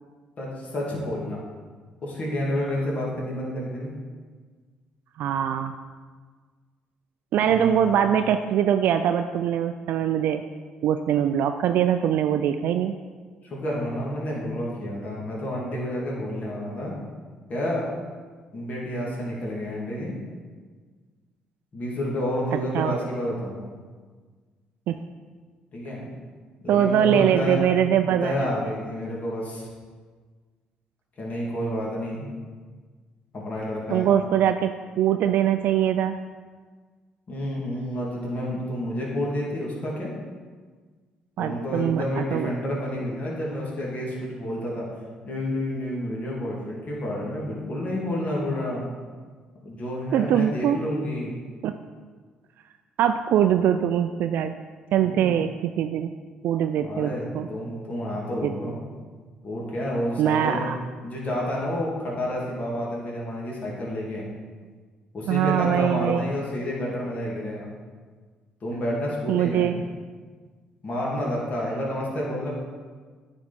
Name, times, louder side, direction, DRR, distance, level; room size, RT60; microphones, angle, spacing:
voice 1, 0.4-1.4 2.0-3.9 7.3-8.0 13.4-16.9 17.5-17.8 18.5-20.2 21.7-23.7 25.7-26.1 26.6-27.6 28.1-29.7 31.2-32.3 33.3-34.1 37.3-40.1 41.4-44.8 45.2-48.8 49.6-51.3 55.0-55.4 56.8-58.9 59.4-60.7 61.0-64.3 65.1-67.7 68.6-69.8 70.8-72.5, left 1 dB, 50° left, -4 dB, 2.5 m, -29 dB
voice 2, 5.2-5.7 7.3-10.4 10.8-12.9 22.7-23.0 24.9-25.0 26.7-28.3 33.9-34.7 35.0-36.2 41.4-42.5 50.1-50.8 51.6-51.7 53.0-54.5 54.9-56.1 56.4-57.5 58.4-58.5 60.2-60.8 65.3-66.2 69.3-69.8, right 9 dB, 70° right, 7 dB, 0.3 m, -22 dB
9.6 x 5.2 x 4.2 m, 1.5 s
supercardioid pair, 60°, 3 cm